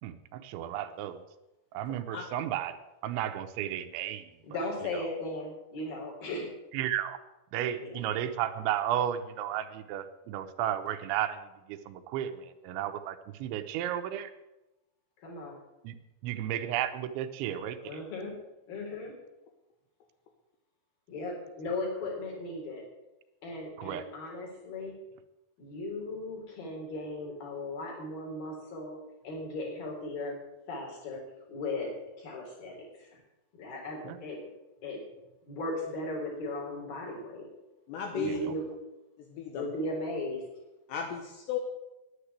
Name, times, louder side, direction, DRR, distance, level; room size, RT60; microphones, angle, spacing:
voice 1, 0.0-1.2 1.7-2.8 3.0-4.6 6.7-7.2 7.5-14.3 15.8-16.0 16.2-17.8 23.8-24.1 34.0-34.2 38.2-38.5, right 11 dB, 80° right, 9 dB, 3.1 m, -33 dB
voice 2, 4.4-6.5 7.8-7.9 15.2-15.6 17.8-18.3 18.7-19.1 21.1-22.8 23.4-24.9 25.6-29.0 29.2-30.4 30.7-31.2 31.5-31.9 32.2-33.2 33.6-34.4 34.8-35.0 35.5-37.5 38.1-38.6 39.5-40.4, left 2 dB, 50° left, -2 dB, 5.5 m, -37 dB
voice 3, 37.9-38.4 39.2-39.7 40.9-41.6, left 7 dB, 70° left, 2 dB, 3.1 m, -35 dB
10.5 x 10.0 x 8.1 m, 0.98 s
omnidirectional pair, 5.4 m